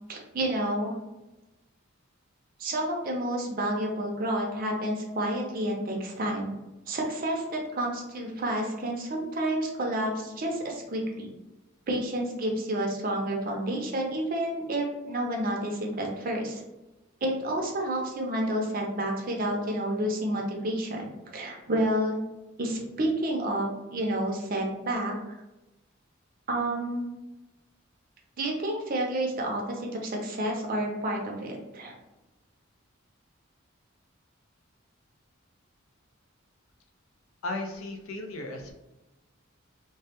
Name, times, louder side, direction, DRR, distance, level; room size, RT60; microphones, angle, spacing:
voice 1, 0.1-1.0 2.6-6.5 6.9-11.3 11.9-16.6 17.2-21.1 21.3-22.2 22.6-25.2 26.5-27.1 28.4-31.9, right 1 dB, 40° right, 0 dB, 0.5 m, -30 dB
voice 2, 37.4-38.7, left 2 dB, 75° left, 3 dB, 0.5 m, -35 dB
2.2 x 2.1 x 2.8 m, 1.0 s
head